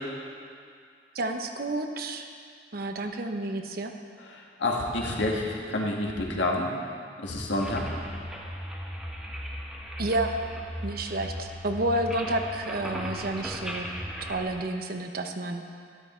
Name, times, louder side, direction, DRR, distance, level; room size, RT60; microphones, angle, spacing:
voice 1, 1.1-2.3 2.7-3.9 10.0-10.4 10.8-13.9 14.2-15.7, right 1 dB, 55° right, 5 dB, 0.9 m, -30 dB
voice 2, 4.6-6.7 7.2-7.9, left 2 dB, 80° left, -1 dB, 1.8 m, -28 dB
sound 1, 7.6-14.5, equal, 5° right, 1.0 m, -37 dB
13.0 x 11.5 x 4.4 m, 2.2 s
head